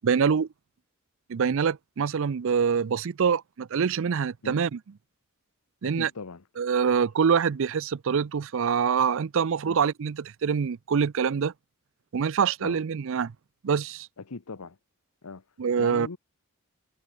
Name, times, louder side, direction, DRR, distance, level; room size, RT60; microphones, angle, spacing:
voice 1, 0.0-0.5 1.3-4.8 5.8-6.1 6.6-11.5 12.1-13.3 13.6-14.1 15.6-16.1, right 6 dB, 60° right, 0.4 m, -25 dB
voice 2, 5.9-6.4 9.6-9.8 12.6-12.8 14.3-14.8 15.2-15.4 15.8-16.2, left 4 dB, 80° left, 0.9 m, -39 dB
head